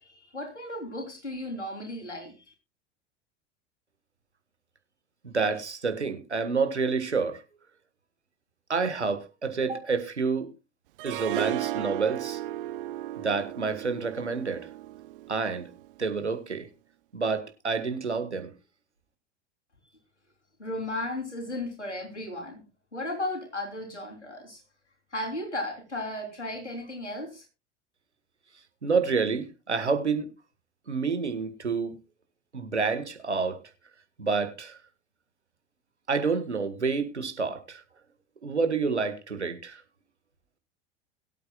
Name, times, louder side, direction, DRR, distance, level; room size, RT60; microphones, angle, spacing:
voice 1, 0.0-2.5 20.6-22.6 22.9-24.6 25.1-27.5, left 1 dB, 85° left, 3.6 m, -35 dB
voice 2, 5.2-7.4 8.7-10.5 11.0-12.4 13.2-14.7 15.3-15.7 16.0-16.7 17.1-18.5 28.8-30.3 30.9-32.0 32.5-33.6 34.2-34.8 36.1-37.8 38.4-39.8, right 4 dB, 85° right, 1.7 m, -28 dB
Harp, 11.0-16.1, right 14 dB, 50° right, 0.7 m, -35 dB
22.0 x 8.5 x 2.3 m
figure-of-eight pair, 80°, 34 cm